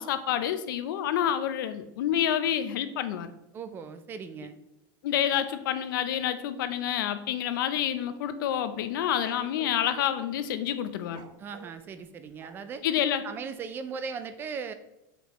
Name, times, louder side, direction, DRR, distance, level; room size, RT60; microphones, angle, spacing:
voice 1, 0.0-3.3 5.0-11.2 12.8-13.2, left 10 dB, 80° left, 11 dB, 0.5 m, -28 dB
voice 2, 3.5-4.6 11.4-12.8 13.2-14.7, right 5 dB, 20° right, 11 dB, 0.3 m, -38 dB
sound 1, 8.8-9.8 11.0-12.9, right 7 dB, 70° right, 0.7 m, -50 dB
6.6 x 5.0 x 3.0 m, 0.89 s
supercardioid pair, 160°, 11 cm